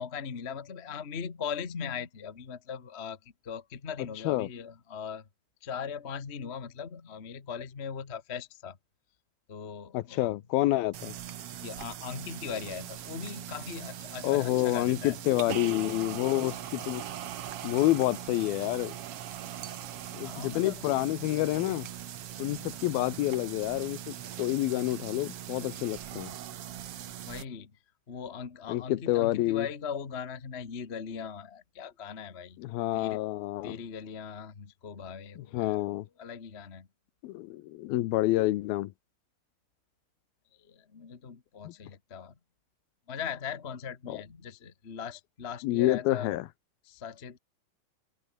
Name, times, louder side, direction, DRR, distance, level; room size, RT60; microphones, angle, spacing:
voice 1, 0.0-5.3 5.6-8.8 9.5-10.4 11.6-15.2 20.2-20.8 27.3-27.7 28.1-32.6 32.9-33.2 33.6-35.8 36.2-36.9 40.6-42.3 43.1-46.3 46.8-47.4, left 7 dB, 50° left, 0.7 m, -39 dB
voice 2, 9.9-11.1 14.2-17.0 17.6-18.9 20.1-21.9 22.4-26.3 28.7-29.7 32.6-33.8 35.4-36.1 37.2-38.9 41.7-41.8 44.1-44.2 45.6-46.5, left 16 dB, 85° left, 2.7 m, -28 dB
sound 1, 10.9-27.4, right 11 dB, 60° right, 1.5 m, -41 dB
open air
omnidirectional pair, 4.3 m